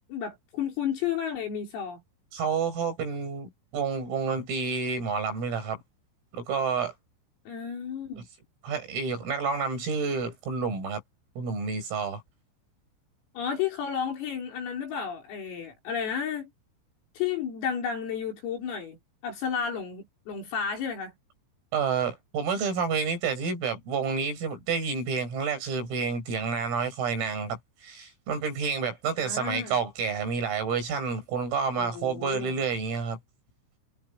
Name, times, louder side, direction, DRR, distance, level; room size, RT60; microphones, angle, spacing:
voice 1, 0.1-2.0 7.5-8.2 13.4-16.5 17.2-19.0 19.2-21.1 29.2-29.8 31.7-32.5, left 7 dB, 80° left, 8.1 m, -32 dB
voice 2, 2.3-5.8 6.3-6.9 8.2-8.3 8.6-11.0 11.4-12.2 21.7-33.2, right 5 dB, 80° right, 10.5 m, -29 dB
omnidirectional pair, 6.0 m